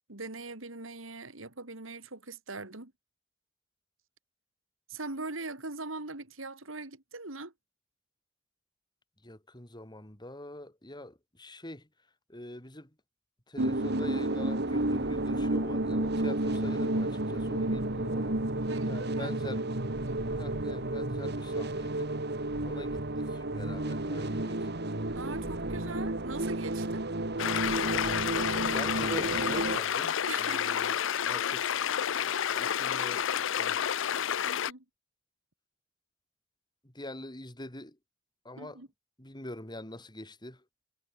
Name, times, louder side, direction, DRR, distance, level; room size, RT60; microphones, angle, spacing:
voice 1, 0.1-2.9 4.9-7.5 18.7-19.6 20.0-20.4 25.1-27.0 30.3-31.0 34.4-34.8 38.6-38.9, right 3 dB, 85° right, 3.1 m, -41 dB
voice 2, 9.2-11.9 12.3-12.9 13.5-19.7 20.3-22.1 22.6-24.7 25.7-26.1 28.6-31.7 32.2-33.8 36.8-38.0 38.4-38.8 39.2-40.6, left 1 dB, 20° left, 5.0 m, -44 dB
sound 1, 13.6-29.8, right 1 dB, 55° right, 2.4 m, -31 dB
sound 2, 27.4-34.7, left 9 dB, 70° left, 0.5 m, -30 dB
head